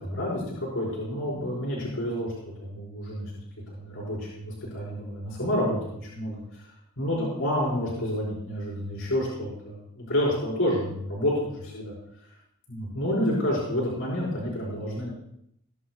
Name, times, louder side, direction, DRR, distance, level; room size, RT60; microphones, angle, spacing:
voice 1, 0.0-2.3 2.6-3.3 3.7-6.7 7.0-11.9 12.7-15.1, left 1 dB, 65° left, -7 dB, 5.4 m, -29 dB
20.0 x 11.0 x 2.5 m, 0.74 s
head